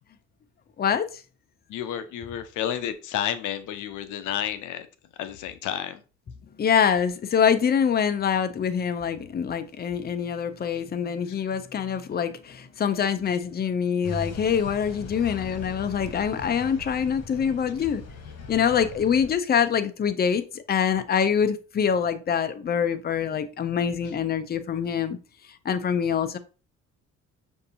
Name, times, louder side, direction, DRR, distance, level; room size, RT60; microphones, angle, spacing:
voice 1, 0.8-1.2 6.6-18.0 18.5-25.2 25.6-26.4, left 7 dB, 30° left, 0.5 m, -25 dB
voice 2, 1.7-4.9 5.2-6.0, left 10 dB, 85° left, 0.6 m, -31 dB
sound 1, 14.0-19.3, left 3 dB, 60° left, 1.3 m, -39 dB
6.4 x 2.7 x 2.7 m
cardioid pair, 90°, 30 cm